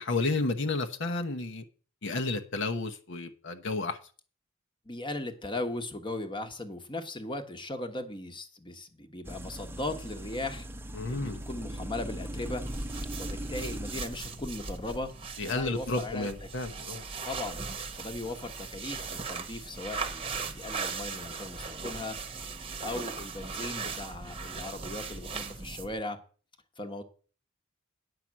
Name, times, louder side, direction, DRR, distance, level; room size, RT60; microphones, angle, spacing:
voice 1, 0.0-1.6 2.0-4.0 10.9-11.4 15.4-17.0, left 3 dB, 65° left, 1.0 m, -31 dB
voice 2, 4.8-10.7 11.1-12.6 13.2-15.1 15.4-16.5 17.2-17.6 17.9-22.2 22.8-26.2 26.8-27.0, left 2 dB, 25° left, 1.2 m, -38 dB
sound 1, 9.2-14.3, right 1 dB, 10° right, 0.7 m, -39 dB
sound 2, 12.4-26.0, right 4 dB, 30° right, 1.0 m, -39 dB
9.5 x 5.8 x 7.4 m
head